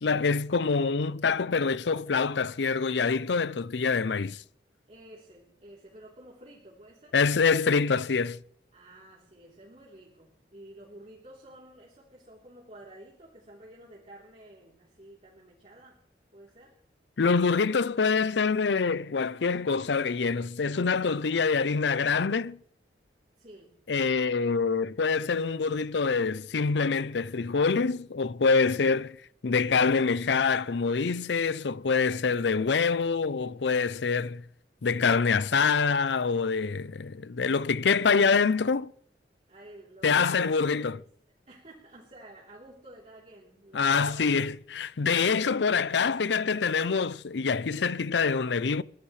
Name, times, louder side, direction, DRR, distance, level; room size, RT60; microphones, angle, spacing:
voice 1, 0.0-4.4 7.1-8.4 17.2-22.6 23.9-29.2 29.4-34.4 34.8-38.9 40.0-41.0 43.7-48.8, left 5 dB, 80° left, 0.6 m, -25 dB
voice 2, 4.9-7.2 8.7-16.0 16.3-16.8 23.4-23.7 39.5-41.1 41.5-44.5, right 1 dB, 40° right, 3.5 m, -51 dB
23.0 x 17.5 x 3.3 m
head